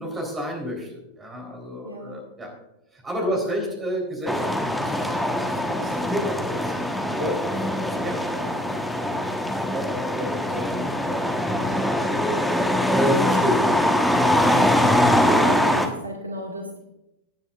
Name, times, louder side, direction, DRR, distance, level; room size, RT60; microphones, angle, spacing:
voice 1, 0.0-2.5 2.9-6.7 7.2-9.2 9.5-13.7, equal, 20° right, 2 dB, 3.9 m, -31 dB
voice 2, 1.8-2.2 3.2-3.7 14.5-14.9 15.2-16.8, right 1 dB, 85° right, 2 dB, 1.9 m, -34 dB
sound 1, 4.3-15.9, left 1 dB, ahead, 1.3 m, -22 dB
18.0 x 9.8 x 2.5 m, 0.90 s
figure-of-eight pair, 90°, 0 cm